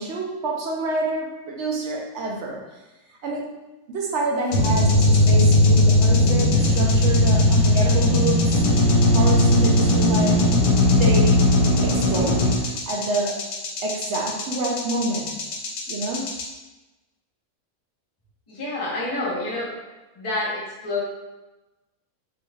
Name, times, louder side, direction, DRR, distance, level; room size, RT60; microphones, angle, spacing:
voice 1, 0.0-2.8 3.1-3.5 3.9-8.7 9.1-10.5 10.9-11.4 11.8-13.4 13.8-15.5 15.9-16.4, right 2 dB, 65° right, 0 dB, 0.7 m, -28 dB
sound 1, 4.5-16.4, left 1 dB, 75° left, 1.1 m, -18 dB
voice 2, 18.5-19.7 20.1-21.0, left 2 dB, 25° left, -6 dB, 0.8 m, -28 dB
4.0 x 3.0 x 2.3 m, 1.1 s
omnidirectional pair, 1.6 m